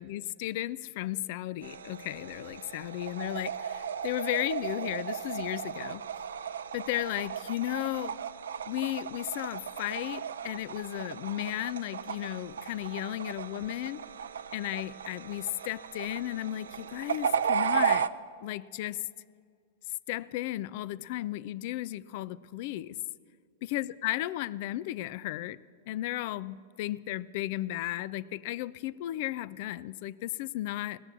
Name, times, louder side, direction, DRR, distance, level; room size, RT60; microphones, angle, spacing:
voice 1, 0.0-6.0 6.7-8.2 8.7-14.0 14.5-18.1 18.4-19.1 20.1-23.0 23.6-25.6 25.9-31.0, left 15 dB, 55° left, 19 dB, 0.4 m, -34 dB
sound 1, 1.6-18.1, right 7 dB, 90° right, 0.4 m, -35 dB
17.5 x 6.7 x 8.5 m, 2.1 s
hypercardioid pair, 120°, 0 cm